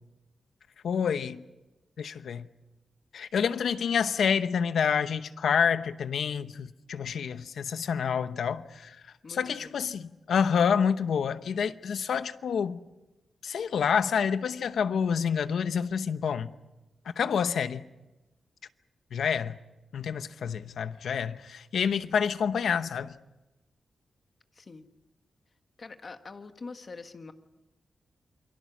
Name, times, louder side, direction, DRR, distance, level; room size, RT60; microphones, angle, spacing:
voice 1, 0.8-1.4 2.0-2.5 3.1-9.0 9.3-12.8 13.4-16.5 17.2-17.8 19.1-19.6 19.9-23.1, left 7 dB, 85° left, 0.9 m, -28 dB
voice 2, 9.2-9.7 24.5-24.9 25.8-27.3, left 4 dB, 35° left, 1.4 m, -44 dB
28.0 x 23.5 x 6.1 m
wide cardioid pair, 170°, 0 cm